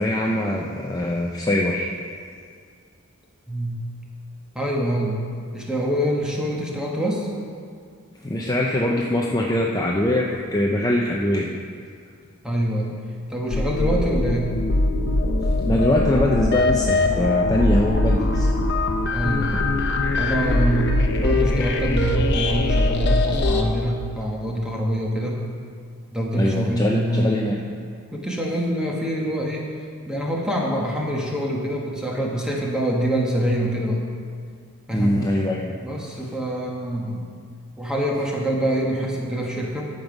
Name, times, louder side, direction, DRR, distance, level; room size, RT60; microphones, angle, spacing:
voice 1, 0.0-1.9 8.2-11.5 15.7-18.5 26.4-27.6 34.9-35.7, left 1 dB, 15° left, -2 dB, 0.5 m, -22 dB
voice 2, 3.5-3.8 4.5-5.2 5.5-7.3 12.4-13.0 13.3-14.5 19.1-19.7 20.2-25.4 26.1-27.4 28.1-29.6 30.1-34.0 34.9-35.1 35.8-37.2 37.8-39.9, right 1 dB, 5° right, -2 dB, 1.2 m, -25 dB
sound 1, 13.5-23.6, left 2 dB, 50° left, 0.8 m, -21 dB
14.0 x 5.3 x 5.1 m, 2.2 s
head